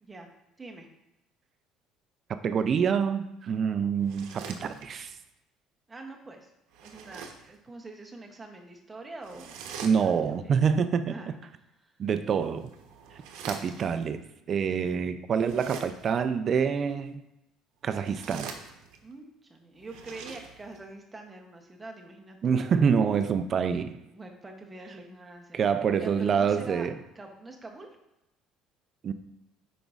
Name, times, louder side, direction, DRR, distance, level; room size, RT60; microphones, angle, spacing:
voice 1, 0.0-0.3 0.6-0.9 5.9-6.5 6.8-10.5 11.1-11.9 19.0-22.4 24.1-26.9 27.2-27.9, right 2 dB, 10° right, 2 dB, 0.7 m, -45 dB
voice 2, 2.3-5.1 9.8-11.1 12.0-12.7 13.4-14.2 14.5-17.2 17.8-18.5 22.4-24.0 25.5-27.0 29.0-29.1, right 6 dB, 30° right, 10 dB, 0.3 m, -26 dB
sound 1, 4.0-5.2 6.7-7.6 9.2-10.4 12.2-14.0 15.4-16.2 17.8-19.1 19.8-20.8, right 6 dB, 75° right, 0.8 m, -44 dB
9.1 x 5.0 x 2.4 m, 0.89 s
cardioid pair, 175°, 0 cm